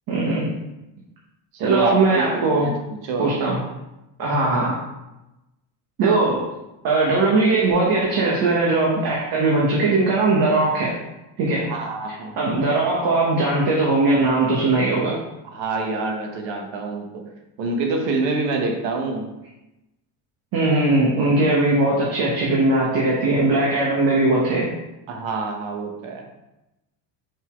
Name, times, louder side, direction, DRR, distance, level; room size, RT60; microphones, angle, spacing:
voice 1, 0.1-0.5 1.6-2.7 3.2-3.6 4.2-4.8 6.0-6.5 6.8-11.0 11.4-11.7 12.4-15.2 20.5-24.7, right 2 dB, 50° right, -4 dB, 1.3 m, -19 dB
voice 2, 1.5-3.3 4.6-4.7 11.6-12.4 15.4-17.2 17.6-19.3 25.1-26.3, right 3 dB, 75° right, 2 dB, 1.3 m, -26 dB
5.5 x 4.1 x 4.5 m, 0.95 s
cardioid pair, 160°, 45 cm